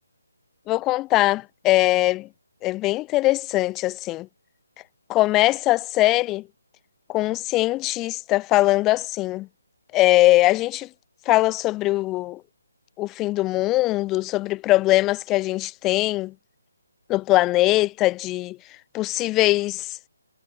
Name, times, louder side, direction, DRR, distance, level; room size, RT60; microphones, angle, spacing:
voice 1, 0.7-2.3 2.6-4.3 5.1-6.4 7.1-9.5 9.9-10.9 11.3-12.4 13.0-16.3 17.1-18.6 18.9-20.0, left 18 dB, 15° left, 1.0 m, -21 dB
hypercardioid pair, 165°, 0 cm